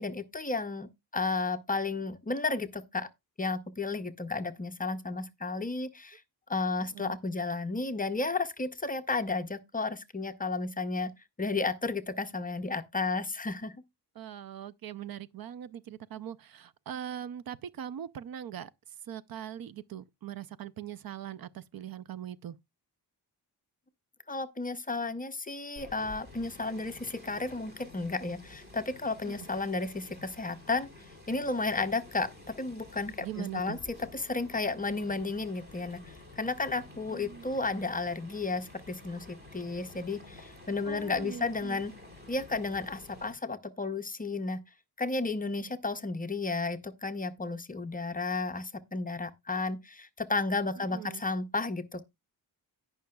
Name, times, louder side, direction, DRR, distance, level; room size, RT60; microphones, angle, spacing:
voice 1, 0.0-3.1 3.4-6.2 6.5-11.1 11.4-13.7 24.3-30.9 31.3-32.3 32.6-41.9 42.3-44.6 45.0-52.0, left 3 dB, 20° left, 0.5 m, -33 dB
voice 2, 14.2-18.7 19.0-22.6 29.3-29.5 33.2-33.8 37.1-37.5 40.9-41.8 50.8-51.2, right 10 dB, 60° right, 0.5 m, -41 dB
sound 1, 25.8-43.3, left 2 dB, 25° right, 2.5 m, -51 dB
17.0 x 5.7 x 2.2 m
wide cardioid pair, 175°, 41 cm